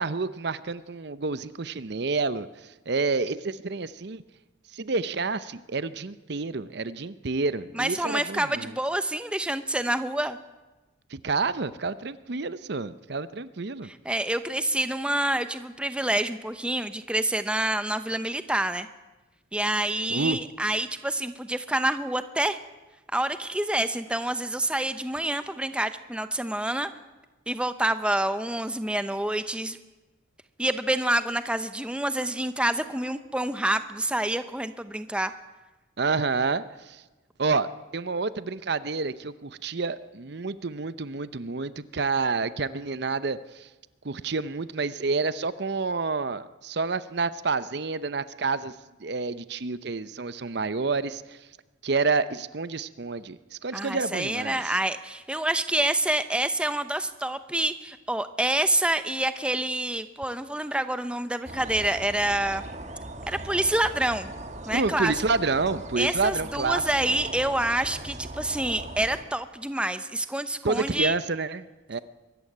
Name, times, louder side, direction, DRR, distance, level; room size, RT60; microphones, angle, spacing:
voice 1, 0.0-4.2 4.7-8.7 11.1-13.9 20.1-20.4 36.0-37.0 37.4-43.7 44.0-48.7 49.0-51.4 51.8-54.7 64.7-66.8 70.6-72.0, right 4 dB, 55° right, 15 dB, 0.7 m, -29 dB
voice 2, 7.7-10.4 13.8-18.9 19.5-22.6 23.1-26.9 27.5-29.8 30.6-35.3 53.7-62.6 63.3-64.3 64.7-65.1 66.0-71.2, right 1 dB, 5° right, 11 dB, 0.8 m, -27 dB
sound 1, 61.5-69.2, right 2 dB, 35° right, 1.5 m, -39 dB
23.0 x 14.0 x 9.4 m, 1.1 s
head